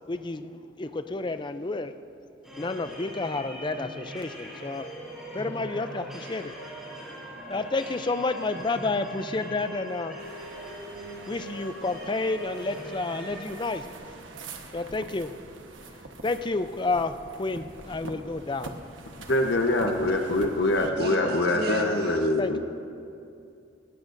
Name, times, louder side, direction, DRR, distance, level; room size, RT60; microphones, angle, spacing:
voice 1, 0.1-2.0 2.6-4.9 5.3-6.5 7.5-10.2 11.3-14.2 14.7-15.4 15.8-18.7 20.8-21.1 22.4-22.6, left 3 dB, 25° left, 10 dB, 0.4 m, -30 dB
sound 1, 2.4-13.4, equal, ahead, 3.4 m, -41 dB
sound 2, 10.2-20.9, right 3 dB, 85° right, 1.2 m, -45 dB
voice 2, 19.3-22.6, left 1 dB, 60° left, 3 dB, 0.9 m, -24 dB
voice 3, 20.8-22.1, right 2 dB, 55° right, 1 dB, 1.7 m, -34 dB
20.5 x 18.0 x 2.6 m, 2.5 s
head